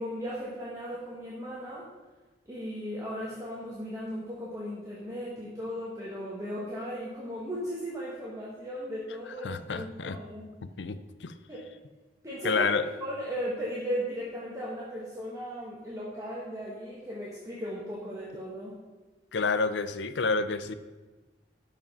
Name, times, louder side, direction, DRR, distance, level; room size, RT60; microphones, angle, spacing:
voice 1, 0.0-1.9 2.5-10.5 11.5-11.6 12.2-18.8, equal, 20° right, -6 dB, 1.5 m, -36 dB
voice 2, 9.4-10.2 10.8-11.3 12.4-12.8 19.3-20.7, left 4 dB, 85° left, 12 dB, 0.5 m, -29 dB
12.0 x 5.1 x 5.7 m, 1.2 s
head